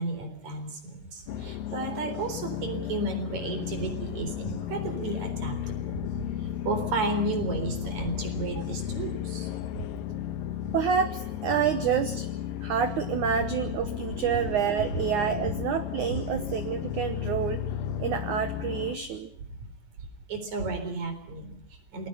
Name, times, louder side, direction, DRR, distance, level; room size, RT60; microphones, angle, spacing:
voice 1, 0.0-6.0 6.4-9.5 9.7-9.9 15.1-15.2 16.1-16.2 20.3-22.1, right 3 dB, 45° right, 8 dB, 4.9 m, -33 dB
sound 1, 1.3-19.0, left 11 dB, 70° left, 2.4 m, -34 dB
voice 2, 10.7-12.3 12.6-17.6 18.0-19.3, right 8 dB, 80° right, 10 dB, 1.7 m, -28 dB
27.5 x 21.0 x 5.6 m, 0.73 s
omnidirectional pair, 5.0 m